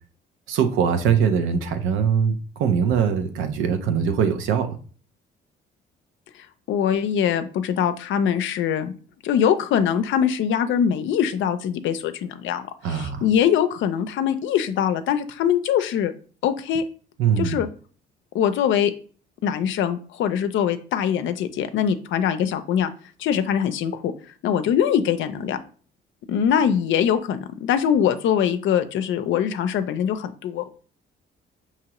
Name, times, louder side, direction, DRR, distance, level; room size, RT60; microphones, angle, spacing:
voice 1, 0.5-4.8 12.8-13.3 17.2-17.6, right 7 dB, 85° right, 8 dB, 0.6 m, -22 dB
voice 2, 6.4-8.9 9.2-16.1 16.4-16.8 17.4-17.7 18.3-18.9 19.4-22.9 23.2-25.6 26.3-30.7, left 8 dB, 75° left, 9 dB, 0.4 m, -23 dB
4.7 x 2.9 x 2.9 m, 0.41 s
cardioid pair, 90°, 20 cm